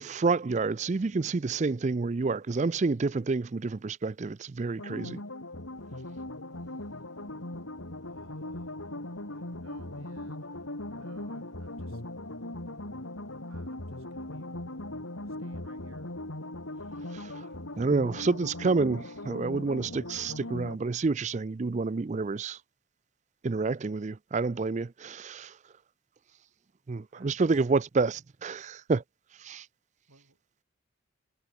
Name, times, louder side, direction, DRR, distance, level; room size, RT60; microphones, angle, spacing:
voice 1, 0.0-5.2 17.1-17.5 17.8-22.6 23.4-25.5 26.9-29.0 29.4-29.7, right 3 dB, 35° right, 0.4 m, -29 dB
sound 1, 4.8-20.8, left 1 dB, 75° left, 3.4 m, -39 dB
voice 2, 8.0-12.0 12.7-12.8 13.5-14.6 15.4-16.1 27.1-27.5 30.1-30.4, right 2 dB, 85° right, 7.2 m, -59 dB
head